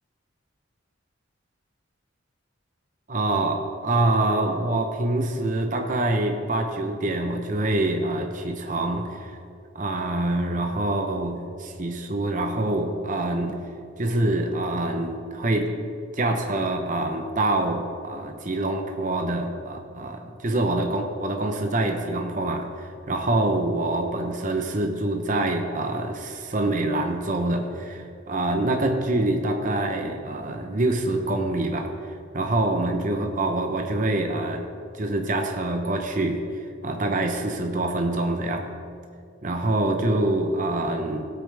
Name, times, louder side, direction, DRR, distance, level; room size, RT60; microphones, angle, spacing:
voice 1, 3.1-9.3 9.7-13.6 14.0-15.7 16.1-31.9 32.3-34.7 34.9-38.7 39.4-41.3, right 2 dB, 40° right, 4 dB, 0.8 m, -25 dB
17.5 x 8.4 x 3.4 m, 2.4 s
head